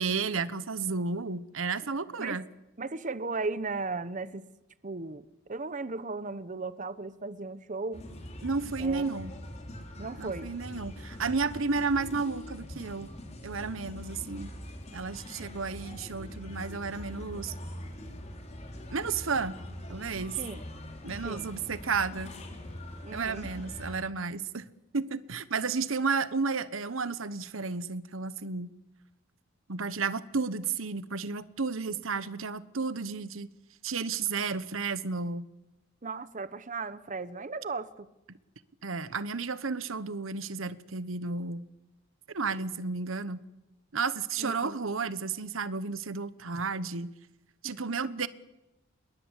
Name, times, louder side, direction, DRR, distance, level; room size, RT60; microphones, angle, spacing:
voice 1, 0.0-2.4 8.4-9.3 10.2-13.1 13.4-14.5 14.9-17.5 18.9-19.6 19.9-20.4 21.0-22.3 23.1-24.7 24.9-28.7 29.7-33.5 33.8-35.5 38.3-38.4 38.8-41.6 42.3-43.4 43.9-47.1 47.6-48.3, right 4 dB, 75° right, 1.1 m, -32 dB
voice 2, 2.8-4.5 4.8-8.1 8.8-9.0 10.0-10.5 20.4-20.6 21.2-21.5 23.0-23.5 36.0-38.1 44.4-44.9 47.6-47.8, right 3 dB, 40° right, 0.9 m, -36 dB
sound 1, 7.9-24.0, left 1 dB, 30° left, 3.9 m, -43 dB
28.0 x 22.0 x 8.2 m
head